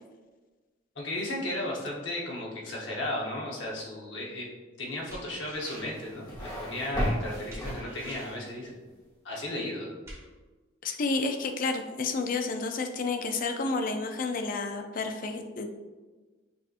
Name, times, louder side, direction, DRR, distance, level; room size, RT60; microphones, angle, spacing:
voice 1, 0.9-4.5 4.8-8.8 9.2-9.9, left 1 dB, 65° left, -3 dB, 1.0 m, -35 dB
sound 1, 5.1-6.1 7.5-8.5 10.1-10.2, right 1 dB, 15° right, 1.1 m, -46 dB
sound 2, 5.7-8.4, equal, 20° left, 1.2 m, -34 dB
voice 2, 10.8-15.7, left 3 dB, 45° left, 6 dB, 0.4 m, -30 dB
5.4 x 2.7 x 2.5 m, 1.3 s
head